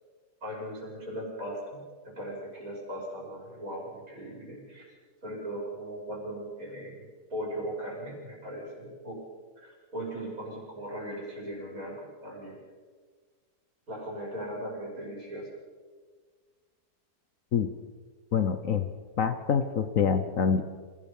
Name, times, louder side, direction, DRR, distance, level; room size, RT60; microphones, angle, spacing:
voice 1, 0.4-4.9 5.2-7.0 7.3-9.2 9.6-12.6 13.9-15.5, right 1 dB, 55° right, -3 dB, 6.2 m, -38 dB
voice 2, 18.3-18.9 19.2-20.6, left 7 dB, 60° left, 10 dB, 1.2 m, -26 dB
27.0 x 18.0 x 5.4 m, 1.5 s
omnidirectional pair, 1.7 m